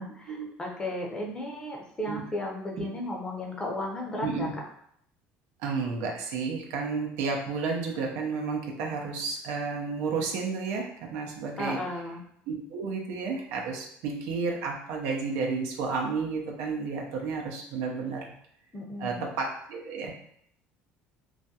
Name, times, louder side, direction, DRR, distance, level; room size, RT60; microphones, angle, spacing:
voice 1, 0.0-4.6 11.6-12.2 18.7-19.3, left 1 dB, 20° left, -1 dB, 0.6 m, -34 dB
voice 2, 4.2-4.5 5.6-11.8 12.5-18.3 19.0-20.1, right 4 dB, 80° right, 1 dB, 0.5 m, -32 dB
2.3 x 2.2 x 2.7 m, 0.68 s
supercardioid pair, 105°, 4 cm